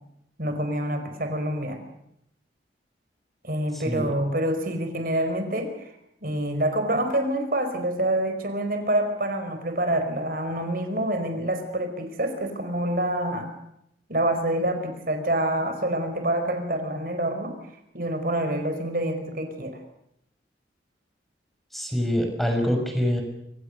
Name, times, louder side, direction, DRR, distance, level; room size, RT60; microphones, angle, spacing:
voice 1, 0.4-1.8 3.4-5.9 6.2-13.5 14.1-17.5 17.9-19.8, right 1 dB, 50° right, 7 dB, 4.8 m, -27 dB
voice 2, 3.7-4.1 21.7-23.2, equal, ahead, 4 dB, 6.4 m, -25 dB
28.0 x 27.0 x 6.7 m, 0.79 s
head